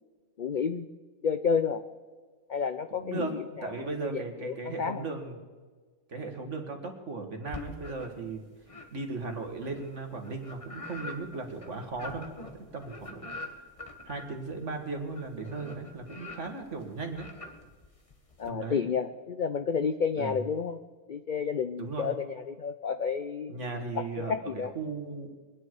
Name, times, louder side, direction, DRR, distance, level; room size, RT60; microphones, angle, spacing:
voice 1, 0.4-0.9 1.2-1.8 2.5-3.7 4.0-5.0 18.4-20.8 21.1-23.5 24.2-24.7, left 6 dB, 65° left, 10 dB, 0.4 m, -30 dB
voice 2, 3.0-3.3 3.6-5.4 6.1-8.4 8.9-13.3 14.1-17.3 18.5-18.8 20.2-20.4 21.8-22.1 23.5-25.3, right 3 dB, 55° right, 4 dB, 2.1 m, -37 dB
sound 1, 7.5-8.3 8.7-18.5, left 2 dB, 25° left, 1.5 m, -45 dB
23.0 x 10.0 x 4.7 m, 1.5 s
omnidirectional pair, 1.5 m